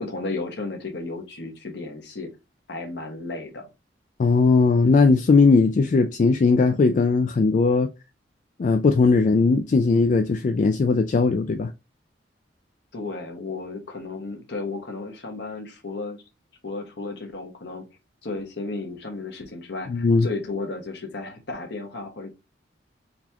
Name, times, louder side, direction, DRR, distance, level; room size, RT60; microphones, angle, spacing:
voice 1, 0.0-2.3 2.7-3.7 12.9-16.2 16.6-17.8 18.2-22.3, left 3 dB, 70° left, 1.1 m, -33 dB
voice 2, 4.2-7.9 8.6-11.7 19.9-20.3, left 4 dB, 45° left, 0.3 m, -19 dB
4.0 x 3.4 x 2.9 m
head